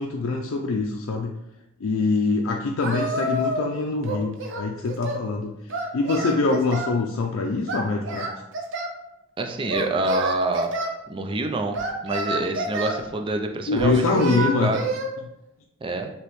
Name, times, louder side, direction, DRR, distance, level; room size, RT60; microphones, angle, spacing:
voice 1, 0.0-1.3 1.8-5.5 5.9-8.3 13.7-14.7, left 3 dB, 80° left, 1 dB, 0.4 m, -24 dB
Singing, 2.8-3.7 4.0-5.2 5.7-7.0 7.7-9.0 9.7-10.9 11.7-13.0 13.8-15.1, right 2 dB, 65° right, 0.6 m, -28 dB
voice 2, 9.4-10.7 11.1-14.0 14.4-14.9 15.8-16.1, right 2 dB, 25° right, 4 dB, 0.4 m, -27 dB
4.9 x 3.0 x 3.1 m, 0.85 s
head